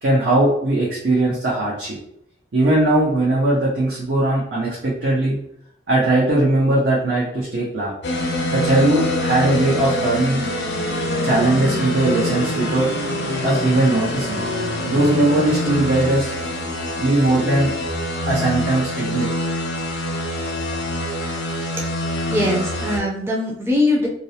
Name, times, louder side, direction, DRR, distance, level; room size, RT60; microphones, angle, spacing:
voice 1, 0.0-2.0 2.5-5.4 5.9-7.9 8.5-10.4 11.2-12.9 13.4-14.4 14.8-16.3 17.0-17.7 18.3-19.3, right 2 dB, 80° right, -6 dB, 0.7 m, -19 dB
sound 1, 8.0-23.0, left 1 dB, 65° left, 0.5 m, -25 dB
voice 2, 22.3-24.1, left 1 dB, 15° right, -2 dB, 0.4 m, -21 dB
2.5 x 2.0 x 2.8 m, 0.73 s
head